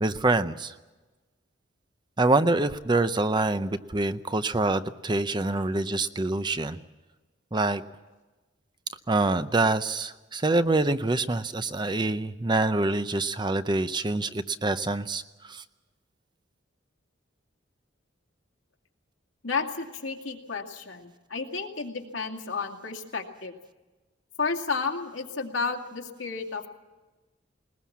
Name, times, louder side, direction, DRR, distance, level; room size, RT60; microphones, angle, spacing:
voice 1, 0.0-0.7 2.2-6.8 7.5-7.8 9.1-15.6, right 2 dB, 25° right, 12 dB, 0.6 m, -26 dB
voice 2, 19.4-23.5 24.4-26.7, left 4 dB, 85° left, 2 dB, 2.3 m, -32 dB
20.5 x 20.5 x 7.3 m, 1.2 s
head